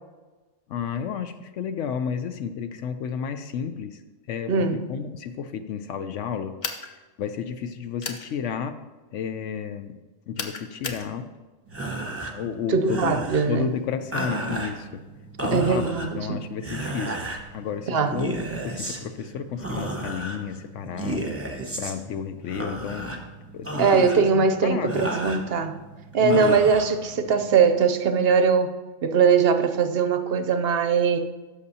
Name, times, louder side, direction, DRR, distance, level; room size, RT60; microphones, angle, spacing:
voice 1, 0.7-4.0 4.3-6.6 7.2-8.8 9.1-10.0 10.3-11.3 12.3-15.0 15.4-17.2 17.5-21.4 21.8-23.2 23.5-25.1 26.2-26.6, left 7 dB, 70° left, 9 dB, 0.9 m, -32 dB
voice 2, 4.5-4.8 12.7-13.7 15.5-16.4 17.9-18.1 23.8-25.8 26.1-28.7 29.0-31.2, right 5 dB, 60° right, 8 dB, 0.7 m, -21 dB
sound 1, 6.6-6.9 8.0-8.3 10.4-11.1, left 4 dB, 40° left, 0.8 m, -32 dB
sound 2, 11.7-27.5, right 2 dB, 10° right, 1.0 m, -34 dB
16.0 x 6.8 x 2.8 m, 1.2 s
omnidirectional pair, 1.4 m